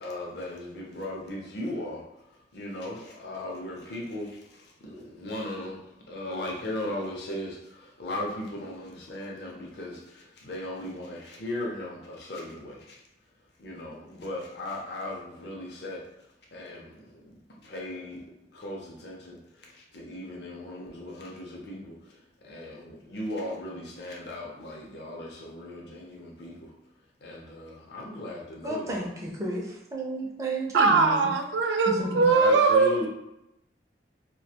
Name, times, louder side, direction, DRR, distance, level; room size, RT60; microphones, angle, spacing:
voice 1, 0.0-2.0 2.5-5.8 6.1-12.9 13.6-16.0 16.5-17.3 17.6-18.2 18.5-22.2 22.4-26.7 27.2-29.0 32.3-33.1, left 1 dB, 65° left, -2 dB, 0.5 m, -37 dB
voice 2, 28.6-31.3 31.9-32.3, right 1 dB, 20° right, -2 dB, 0.4 m, -32 dB
voice 3, 30.7-33.1, right 4 dB, 85° right, 4 dB, 0.4 m, -21 dB
2.3 x 2.2 x 2.8 m, 0.86 s
head